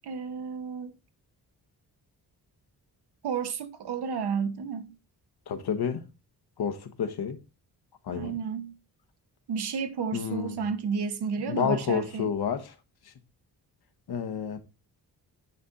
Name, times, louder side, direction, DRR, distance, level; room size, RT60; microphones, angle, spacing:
voice 1, 0.0-0.9 3.2-4.9 8.1-8.7 9.5-12.3, right 6 dB, 85° right, 1.0 m, -32 dB
voice 2, 5.5-6.0 6.6-7.4 8.0-8.4 10.1-10.6 11.5-12.7 13.0-13.1 14.1-14.6, left 7 dB, 75° left, 1.2 m, -30 dB
9.5 x 3.7 x 4.0 m
cardioid pair, 100°, 39 cm